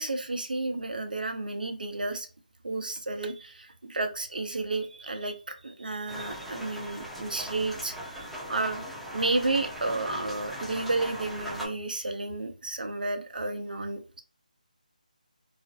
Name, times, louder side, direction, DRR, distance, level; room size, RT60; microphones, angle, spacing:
voice 1, 0.0-2.3 2.6-8.8 9.1-14.2, right 2 dB, 85° right, 5 dB, 0.5 m, -32 dB
sound 1, 6.1-11.7, equal, ahead, 0.4 m, -39 dB
2.4 x 2.0 x 2.6 m, 0.36 s
figure-of-eight pair, 160°, 5 cm